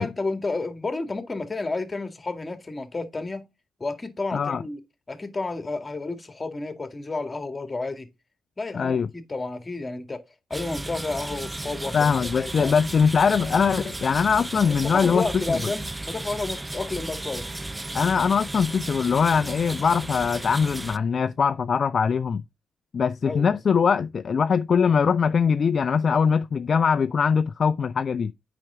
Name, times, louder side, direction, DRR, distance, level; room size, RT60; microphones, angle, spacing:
voice 1, 0.0-3.5 3.8-4.8 5.1-8.1 8.6-10.2 10.5-12.1 12.4-12.7 14.7-17.5 23.3-23.6, left 3 dB, 30° left, 2.1 m, -31 dB
voice 2, 4.3-4.6 8.7-9.1 11.9-15.7 17.9-22.4 22.9-28.3, left 6 dB, 50° left, 0.5 m, -22 dB
sound 1, 10.5-21.0, right 2 dB, 20° right, 0.6 m, -34 dB
8.9 x 5.9 x 3.8 m
hypercardioid pair, 50°, 0 cm